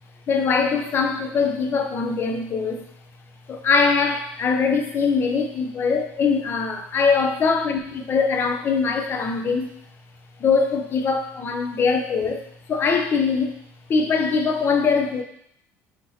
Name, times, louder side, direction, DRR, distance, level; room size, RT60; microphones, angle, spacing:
voice 1, 0.3-2.8 3.5-9.7 10.4-12.4 12.7-13.5 13.9-15.2, left 5 dB, 40° left, 4 dB, 0.6 m, -22 dB
4.4 x 2.8 x 3.9 m, 0.70 s
cardioid pair, 125°, 6 cm